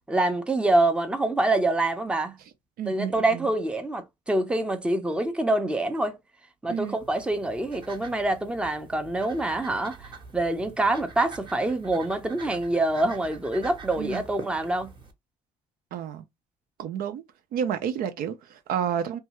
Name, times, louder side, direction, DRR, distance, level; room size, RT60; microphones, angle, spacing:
voice 1, 0.1-2.4 2.8-6.2 6.6-14.9, right 2 dB, 5° right, 0.6 m, -26 dB
voice 2, 2.8-3.5 6.7-7.0 14.0-14.2 15.9-16.2 16.8-17.2 17.5-19.2, right 8 dB, 65° right, 0.5 m, -30 dB
sound 1, 6.7-15.1, right 4 dB, 30° right, 0.9 m, -45 dB
2.6 x 2.3 x 3.0 m
supercardioid pair, 85°, 16 cm